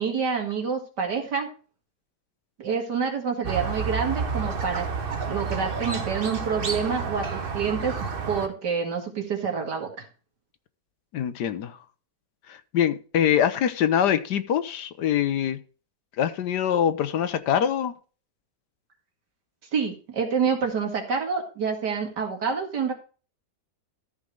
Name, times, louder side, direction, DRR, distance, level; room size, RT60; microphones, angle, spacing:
voice 1, 0.0-1.5 2.6-4.9 5.3-7.9 8.3-10.0 19.7-22.9, right 6 dB, 70° right, 2.7 m, -27 dB
Squeak, 3.4-8.5, right 5 dB, 35° right, 1.1 m, -30 dB
voice 2, 11.1-11.8 12.5-15.6 16.2-18.0, left 9 dB, 75° left, 1.3 m, -24 dB
13.5 x 5.2 x 4.7 m
omnidirectional pair, 1.9 m